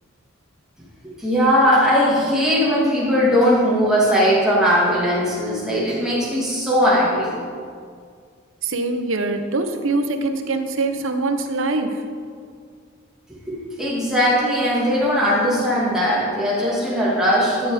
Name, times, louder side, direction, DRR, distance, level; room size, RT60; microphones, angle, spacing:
voice 1, 1.0-7.3 13.5-17.7, equal, 5° right, -7 dB, 2.5 m, -19 dB
voice 2, 8.6-12.0, right 3 dB, 75° right, 6 dB, 0.9 m, -23 dB
12.0 x 6.4 x 5.1 m, 2.1 s
head